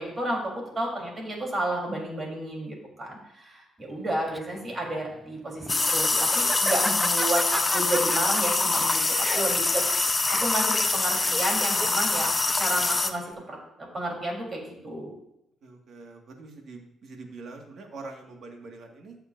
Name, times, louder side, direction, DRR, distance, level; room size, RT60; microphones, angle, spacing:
voice 1, 0.0-12.3 12.6-15.1, right 1 dB, 35° right, -1 dB, 3.7 m, -31 dB
Laughter, 3.9-13.3, right 1 dB, 5° right, 0.6 m, -36 dB
sound 1, 5.7-13.1, left 3 dB, 25° left, 0.8 m, -24 dB
voice 2, 15.6-19.2, right 3 dB, 60° right, 2 dB, 1.9 m, -44 dB
15.0 x 6.9 x 2.6 m, 0.79 s
cardioid pair, 90°, 0 cm